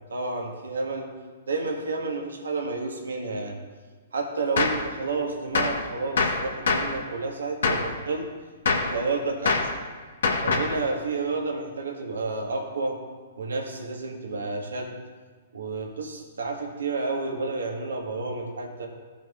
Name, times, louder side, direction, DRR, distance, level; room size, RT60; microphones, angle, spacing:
voice 1, 0.1-1.1 1.5-3.6 4.1-8.3 8.7-9.7 10.4-13.0 13.4-14.9 15.5-18.9, right 3 dB, 90° right, 1 dB, 1.3 m, -30 dB
Gunshot gunfire, 4.6-4.9 5.5-5.8 6.2-7.0 7.6-7.9 8.6-9.0 9.5-9.8 10.2-10.8, left 4 dB, 75° left, 1.2 m, -24 dB
16.5 x 6.0 x 2.4 m, 1.5 s
hypercardioid pair, 130°, 0 cm